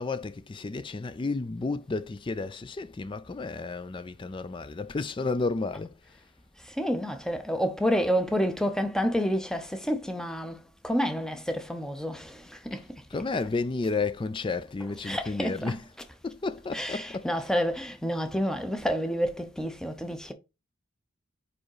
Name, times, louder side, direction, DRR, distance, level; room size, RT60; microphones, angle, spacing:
voice 1, 0.0-6.0 12.7-12.8 13.1-15.9 16.2-17.3, left 3 dB, 25° left, 0.3 m, -32 dB
voice 2, 6.6-10.6 10.8-13.0 15.0-15.8 16.7-20.3, equal, 5° left, 0.7 m, -29 dB
5.0 x 4.9 x 4.7 m
head